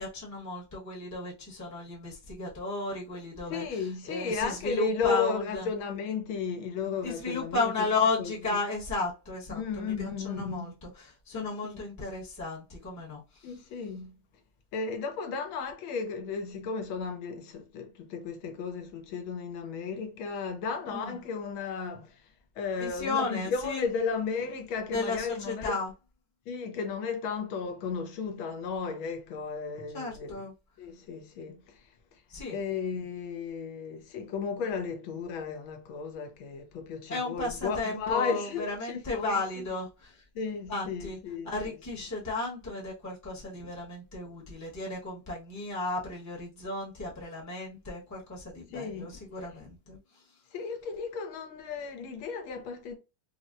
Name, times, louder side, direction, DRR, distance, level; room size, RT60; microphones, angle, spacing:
voice 1, 0.0-5.7 7.0-13.5 20.9-21.1 22.8-23.9 24.9-25.9 29.9-30.5 32.3-32.6 37.1-40.2 40.7-41.2 41.4-50.0, left 3 dB, 10° left, 0.8 m, -34 dB
voice 2, 3.5-7.9 8.2-8.3 9.5-10.7 11.3-11.8 13.4-14.1 14.7-22.2 22.6-25.8 26.5-30.4 30.8-31.8 32.5-39.6 40.3-41.8 48.7-49.2 50.5-52.9, left 5 dB, 80° left, 1.5 m, -34 dB
4.0 x 2.1 x 2.5 m
omnidirectional pair, 2.2 m